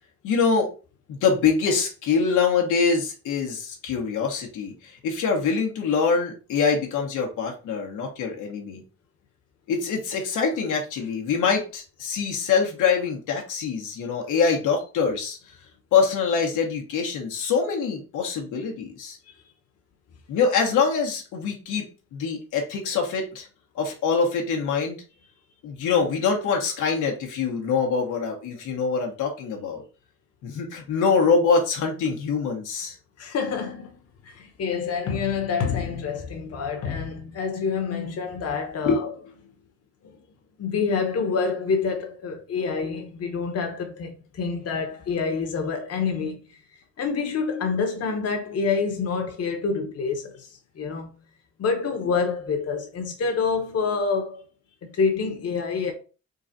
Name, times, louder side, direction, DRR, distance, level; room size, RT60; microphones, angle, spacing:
voice 1, 0.2-0.7 1.1-8.8 9.7-15.4 15.9-19.2 20.3-23.5 23.7-25.0 25.6-29.8 30.4-33.0 38.9-39.1, left 5 dB, 85° left, 1.1 m, -24 dB
voice 2, 33.2-34.0 34.2-39.1 40.0-40.1 40.6-46.4 47.0-51.1 51.6-54.4 54.9-55.9, left 5 dB, 55° left, 1.0 m, -27 dB
3.9 x 2.4 x 4.0 m
cardioid pair, 90°, 30 cm